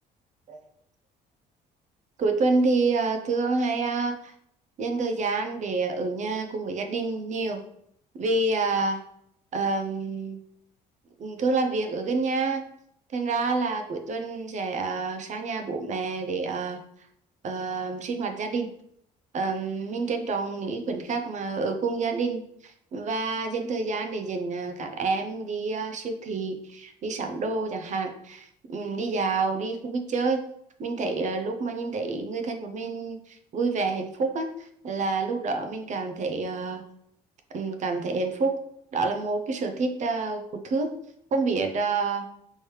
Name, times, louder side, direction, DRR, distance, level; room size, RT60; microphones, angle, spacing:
voice 1, 2.2-4.3 4.8-7.6 8.1-9.0 9.5-10.4 11.2-12.7 13.1-16.8 17.4-18.7 19.3-30.5 30.8-36.8 37.5-38.6 38.9-41.0 41.3-42.3, right 3 dB, 45° right, 6 dB, 0.6 m, -28 dB
4.5 x 3.2 x 3.1 m, 0.71 s
cardioid pair, 110°, 17 cm